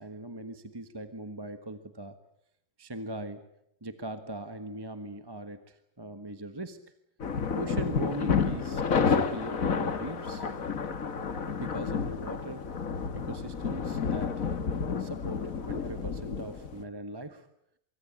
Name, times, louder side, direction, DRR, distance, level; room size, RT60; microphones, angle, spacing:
voice 1, 0.0-2.2 2.8-3.5 3.8-6.8 7.5-10.5 11.6-12.7 13.1-14.5 15.0-17.5, right 1 dB, 15° right, 10 dB, 1.3 m, -40 dB
sound 1, 7.2-16.8, left 5 dB, 55° left, 2.0 m, -30 dB
25.0 x 23.5 x 8.7 m, 0.74 s
omnidirectional pair, 1.7 m